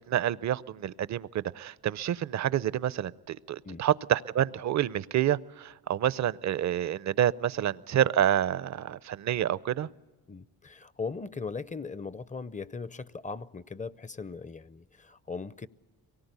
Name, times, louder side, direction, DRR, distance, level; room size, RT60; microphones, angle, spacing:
voice 1, 0.1-9.9, right 10 dB, 50° right, 0.6 m, -28 dB
voice 2, 10.3-15.7, left 4 dB, 20° left, 0.6 m, -39 dB
23.5 x 18.5 x 8.1 m
supercardioid pair, 65°, 36 cm